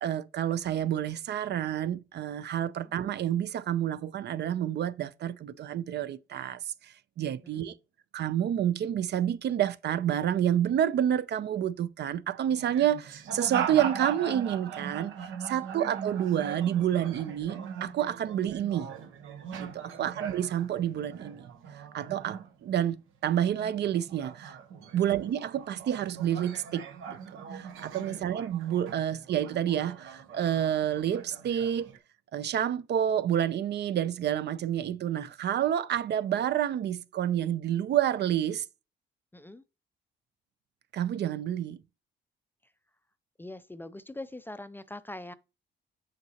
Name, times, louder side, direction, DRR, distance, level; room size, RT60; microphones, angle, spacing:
voice 1, 0.0-7.7 8.1-15.1 15.4-18.9 19.6-23.0 23.2-24.6 24.9-31.9 32.3-38.6 40.9-41.8, right 10 dB, 60° right, 0.5 m, -29 dB
sound 1, 12.5-23.0 23.3-32.0, right 7 dB, 85° right, 1.1 m, -40 dB
voice 2, 39.3-39.6 43.4-45.3, left 1 dB, 10° left, 0.4 m, -44 dB
6.6 x 6.4 x 2.8 m
cardioid pair, 90°, 20 cm